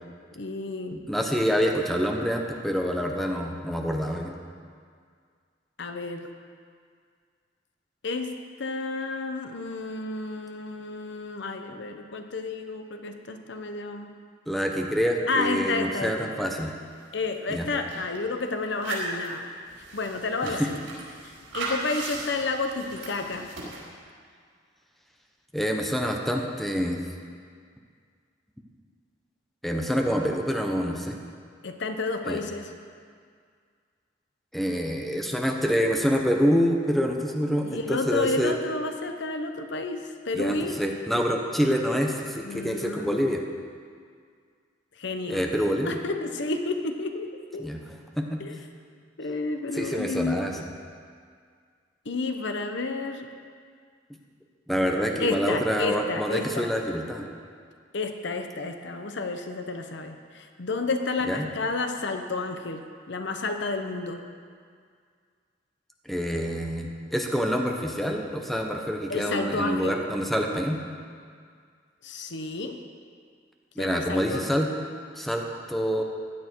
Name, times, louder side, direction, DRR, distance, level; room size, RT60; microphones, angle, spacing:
voice 1, 0.4-1.0 5.8-6.3 8.0-14.1 15.3-16.3 17.1-19.5 19.9-20.8 21.2-23.5 31.6-32.7 37.6-40.7 42.4-43.2 45.0-45.4 45.9-47.7 48.4-48.6 49.2-50.4 52.1-53.3 55.2-56.7 57.9-64.2 69.1-70.0 72.0-72.8 73.8-74.4, left 3 dB, 70° left, 6 dB, 0.9 m, -31 dB
voice 2, 0.9-4.3 14.5-16.7 17.5-17.7 20.4-20.7 25.5-27.0 29.6-31.2 32.2-32.4 34.5-38.5 40.3-43.4 45.3-46.0 47.6-47.8 48.2-48.4 49.7-50.6 54.7-57.3 61.3-61.5 66.0-70.8 73.8-74.7 75.1-76.0, equal, ahead, 1 dB, 1.1 m, -26 dB
sound 1, 16.9-17.0 17.2-18.2 18.6-23.8, right 2 dB, 80° right, 4.4 m, -37 dB
16.0 x 11.0 x 4.6 m, 2.1 s
head